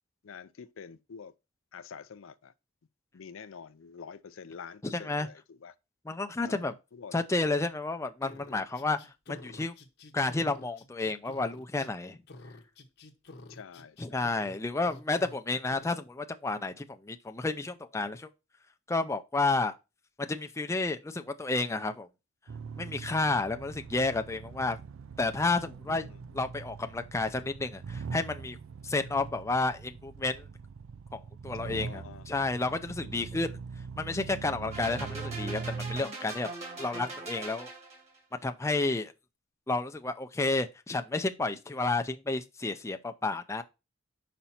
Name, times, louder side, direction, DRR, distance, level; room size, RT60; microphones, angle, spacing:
voice 1, 0.2-1.3 1.7-2.5 3.1-5.7 6.4-7.2 13.5-14.4 25.9-26.1 31.6-32.5 33.1-33.2, left 6 dB, 75° left, 0.5 m, -47 dB
voice 2, 4.8-5.3 6.1-6.7 7.1-9.0 9.3-9.7 10.1-12.2 14.0-18.3 18.9-19.8 20.2-22.1 22.8-24.8 25.2-26.0 26.3-28.6 28.8-30.5 31.1-31.2 31.4-33.5 34.0-36.5 36.8-37.7 38.4-39.1 39.7-43.6, left 3 dB, 15° left, 0.5 m, -31 dB
sound 1, 8.2-11.9 12.3-14.6 14.8-15.4 15.7-15.9, left 2 dB, 55° left, 0.9 m, -49 dB
sound 2, 22.5-36.0, right 5 dB, 75° right, 0.4 m, -42 dB
sound 3, 34.7-38.2, right 3 dB, 35° right, 2.5 m, -41 dB
5.6 x 5.1 x 4.3 m
head